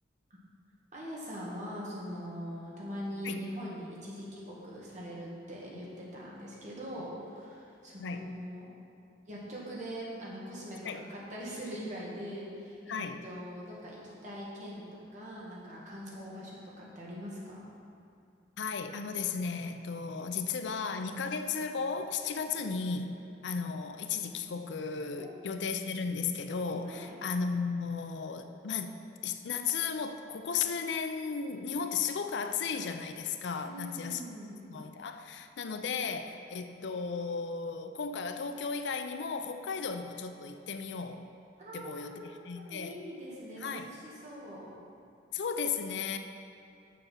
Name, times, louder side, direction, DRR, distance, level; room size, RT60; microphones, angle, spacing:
voice 1, 0.9-8.7 9.3-14.8 15.1-17.7 21.1-21.2 23.1-23.3 25.2-25.4 26.2-26.3 26.8-27.3 33.6-34.6 39.7-39.8 41.6-44.7, equal, 40° right, -5 dB, 1.8 m, -42 dB
voice 2, 12.9-13.2 16.8-16.9 18.6-23.1 23.4-28.9 29.2-34.2 34.7-41.2 41.7-42.9 43.6-43.9 45.3-46.2, left 5 dB, 75° left, 8 dB, 0.5 m, -35 dB
6.8 x 6.5 x 5.8 m, 2.5 s
head